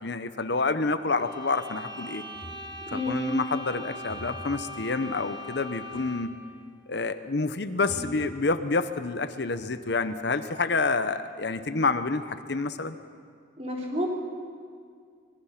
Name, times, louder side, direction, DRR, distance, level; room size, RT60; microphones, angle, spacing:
voice 1, 0.0-2.2 2.9-6.3 6.9-13.0, left 3 dB, 60° left, 10 dB, 0.8 m, -28 dB
sound 1, 1.1-6.4, left 1 dB, 20° left, 2.0 m, -41 dB
sound 2, 2.3-3.0 4.1-4.7 5.9-6.3 6.6-6.7 7.9-8.9 9.3-10.1, equal, 35° left, 3.6 m, -44 dB
voice 2, 2.9-3.3 13.6-14.1, left 2 dB, 35° right, -1 dB, 3.6 m, -29 dB
25.0 x 21.5 x 5.9 m, 2.1 s
head